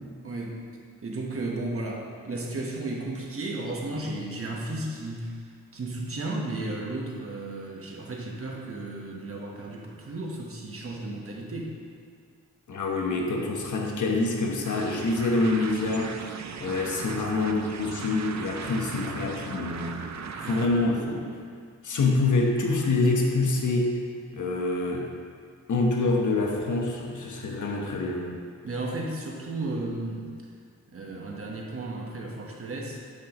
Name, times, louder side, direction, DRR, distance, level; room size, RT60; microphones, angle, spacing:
voice 1, 0.2-0.6 1.0-11.8 20.4-20.6 28.6-30.3 30.9-33.0, right 2 dB, 50° right, -1 dB, 1.3 m, -34 dB
voice 2, 12.7-16.1 16.6-20.0 20.4-21.3 21.8-23.9 24.3-25.1 25.7-28.3, left 3 dB, 85° left, 0 dB, 1.2 m, -26 dB
sound 1, 14.6-21.0, right 5 dB, 65° right, 0.6 m, -38 dB
10.0 x 7.7 x 3.1 m, 2.1 s
wide cardioid pair, 130°, 29 cm